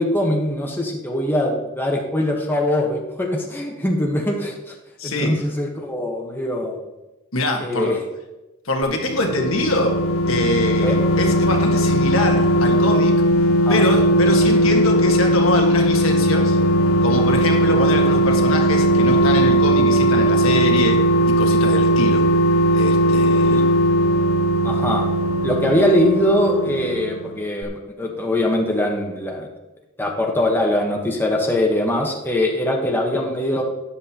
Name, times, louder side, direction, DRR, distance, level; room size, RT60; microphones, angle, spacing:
voice 1, 0.0-4.8 5.0-6.8 7.6-8.0 10.8-11.0 13.7-13.9 23.5-23.6 24.6-25.0 25.4-29.5 30.0-33.6, left 1 dB, 10° left, 0 dB, 1.2 m, -22 dB
voice 2, 5.0-5.3 7.3-7.9 8.6-10.0 10.3-13.2 13.7-16.6 17.0-21.0 21.3-22.3 22.7-23.6, left 1 dB, 70° left, 2 dB, 1.6 m, -24 dB
sound 1, 9.0-27.3 27.6-27.7, right 1 dB, 85° left, 0.7 m, -18 dB
13.0 x 10.5 x 2.9 m, 1.0 s
head